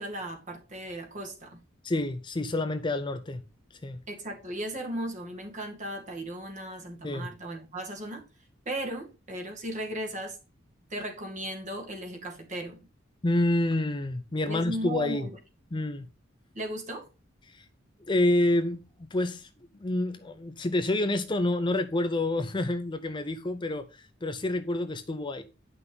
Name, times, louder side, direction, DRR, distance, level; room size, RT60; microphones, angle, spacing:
voice 1, 0.0-1.6 4.1-8.3 8.7-10.4 10.9-12.8 14.5-15.3 16.5-17.1, right 1 dB, 40° right, 2.3 m, -36 dB
voice 2, 1.8-3.4 3.8-4.0 7.0-7.3 13.2-15.3 15.7-16.1 17.5-17.7 18.1-19.5 19.8-25.4, left 1 dB, 25° left, 0.6 m, -28 dB
9.6 x 5.9 x 3.9 m
head